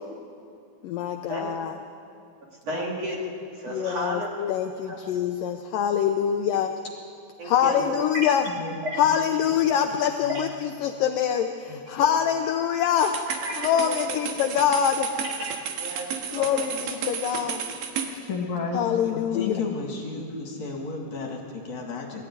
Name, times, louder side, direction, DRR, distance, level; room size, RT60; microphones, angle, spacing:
voice 1, 0.8-1.8 2.7-2.9 3.7-6.7 7.4-8.5 9.0-13.1 13.6-15.1 16.3-17.7 18.7-19.6, left 9 dB, 75° left, 6 dB, 2.1 m, -24 dB
voice 2, 2.6-4.3 4.9-5.0 7.4-7.9 8.1-8.3 8.8-9.2 10.3-10.4 13.4-14.0 15.8-16.6, equal, 40° right, -2 dB, 3.6 m, -33 dB
voice 3, 8.4-8.8 11.7-11.8 18.3-18.8 19.1-22.2, left 4 dB, 50° left, 0 dB, 3.1 m, -33 dB
sound 1, 13.0-18.1, right 7 dB, 75° right, 3.3 m, -33 dB
21.0 x 15.0 x 9.6 m, 2.4 s
omnidirectional pair, 4.5 m